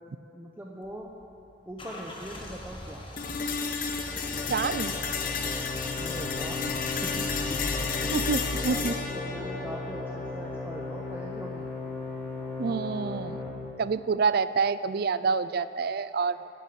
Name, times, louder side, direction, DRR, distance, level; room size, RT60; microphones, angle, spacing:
voice 1, 0.3-1.2 1.7-3.1 5.9-7.6 8.3-11.7, right 1 dB, 10° right, -2 dB, 0.8 m, -41 dB
Car / Engine starting / Idling, 0.8-8.7, left 1 dB, 30° left, 1.5 m, -40 dB
sound 1, 3.2-11.2, left 5 dB, 50° left, 1.0 m, -33 dB
sound 2, 4.1-13.5, left 3 dB, 10° left, 4.0 m, -37 dB
voice 2, 4.5-4.9 8.1-8.9 12.6-13.5 13.8-16.5, right 5 dB, 60° right, 15 dB, 0.4 m, -27 dB
12.5 x 8.5 x 8.2 m, 2.7 s
head